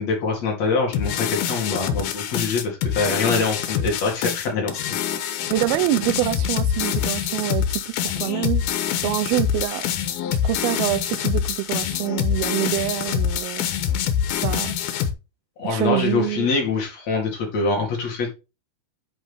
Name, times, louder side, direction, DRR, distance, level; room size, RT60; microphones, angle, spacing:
voice 1, 0.0-4.9 15.6-18.3, left 4 dB, 50° left, 3.3 m, -24 dB
sound 1, 0.9-15.1, left 9 dB, 85° left, 2.9 m, -25 dB
voice 2, 5.5-8.7 9.0-9.9 10.4-13.7 14.4-14.8 15.7-16.5, right 17 dB, 85° right, 2.5 m, -25 dB
9.1 x 5.5 x 3.5 m
omnidirectional pair, 4.3 m